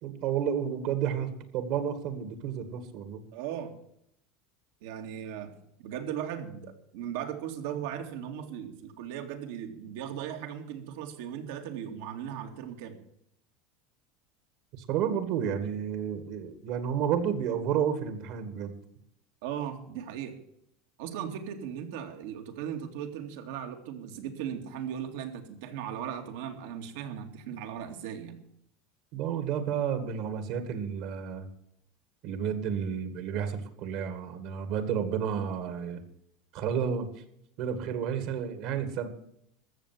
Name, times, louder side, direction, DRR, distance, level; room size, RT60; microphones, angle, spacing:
voice 1, 0.0-3.2 14.8-18.8 29.1-31.5 32.2-36.0 36.5-37.1 37.6-39.1, right 8 dB, 60° right, 9 dB, 2.1 m, -31 dB
voice 2, 3.3-3.8 4.8-13.0 19.4-20.4 21.0-28.4, right 9 dB, 75° right, 5 dB, 2.4 m, -38 dB
14.0 x 7.1 x 9.4 m, 0.73 s
supercardioid pair, 135°, 0 cm